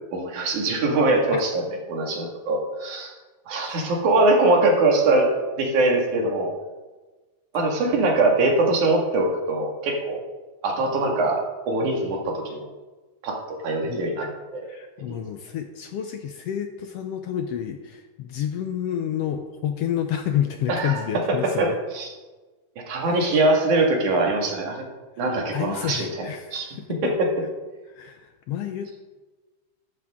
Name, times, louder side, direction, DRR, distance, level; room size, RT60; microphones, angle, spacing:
voice 1, 0.1-1.5 1.9-3.1 3.5-6.5 7.5-10.2 10.6-12.7 13.2-14.7 15.0-15.1 20.7-21.0 21.6-22.1 22.9-24.8 25.2-26.7, right 2 dB, 85° right, 0 dB, 3.5 m, -22 dB
voice 2, 3.6-4.0 13.9-14.3 14.7-21.8 25.5-27.1 27.9-29.0, left 10 dB, 70° left, 6 dB, 1.5 m, -30 dB
13.5 x 11.5 x 3.7 m, 1.2 s
omnidirectional pair, 3.4 m